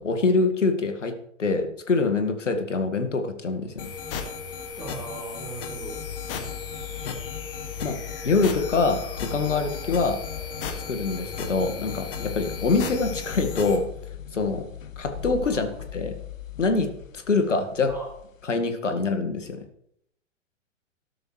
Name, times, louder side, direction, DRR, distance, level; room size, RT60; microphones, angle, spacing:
voice 1, 0.0-3.9 6.4-6.5 7.0-7.2 7.8-10.2 10.9-13.9 14.3-14.7 15.0-16.2 16.6-17.9 18.4-19.6, left 3 dB, 70° left, 6 dB, 2.0 m, -25 dB
sound 1, 3.8-13.8, left 5 dB, 45° left, 2.1 m, -35 dB
voice 2, 4.8-6.0 15.5-15.6 17.9-18.1, right 3 dB, 5° right, -4 dB, 3.4 m, -37 dB
sound 2, 5.8-18.4, left 10 dB, 90° left, 0.7 m, -39 dB
13.0 x 12.0 x 3.2 m, 0.72 s
figure-of-eight pair, 110°, 38 cm